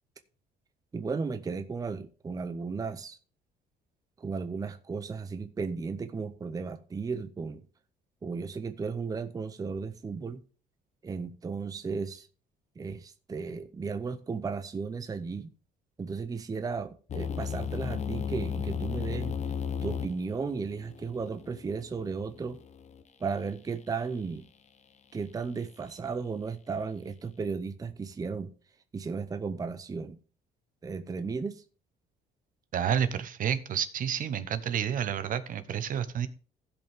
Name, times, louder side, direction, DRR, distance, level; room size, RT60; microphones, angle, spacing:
voice 1, 0.9-3.2 4.2-7.6 8.2-10.4 11.0-12.3 12.8-15.5 16.0-19.4 19.8-22.6 23.2-24.4 25.1-28.5 28.9-30.2 30.8-31.6, right 5 dB, 20° right, 0.7 m, -35 dB
sound 1, 17.1-23.0, left 7 dB, 40° left, 1.0 m, -35 dB
voice 2, 32.7-36.3, right 9 dB, 55° right, 1.0 m, -30 dB
16.0 x 5.4 x 3.6 m
cardioid pair, 110°, 17 cm